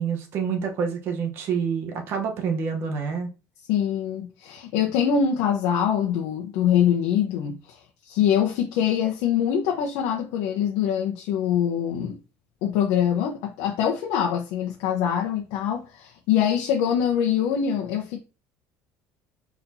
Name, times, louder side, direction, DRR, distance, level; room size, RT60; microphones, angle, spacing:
voice 1, 0.0-3.3, right 6 dB, 45° right, 1.0 m, -27 dB
voice 2, 3.7-12.2 12.6-18.2, left 9 dB, 70° left, 0.9 m, -24 dB
4.4 x 4.2 x 2.8 m
cardioid pair, 175°, 6 cm